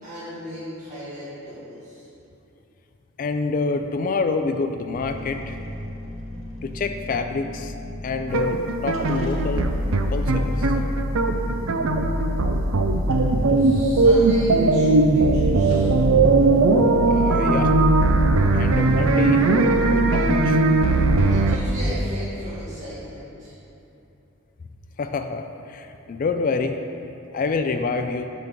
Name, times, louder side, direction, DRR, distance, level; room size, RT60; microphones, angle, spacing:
voice 1, 0.0-2.1 13.5-15.9 19.5-20.0 21.3-23.5, equal, 40° right, -11 dB, 1.4 m, -37 dB
voice 2, 3.2-5.6 6.6-7.7 8.0-9.7 10.1-10.7 17.1-17.8 18.5-19.5 19.9-20.6 25.0-26.8 27.3-28.3, left 4 dB, 40° left, 6 dB, 0.3 m, -27 dB
sound 1, 4.9-22.0, left 1 dB, 80° left, 1.1 m, -29 dB
sound 2, 8.3-21.6, right 3 dB, 70° right, 0.5 m, -19 dB
5.8 x 5.1 x 6.0 m, 2.8 s
head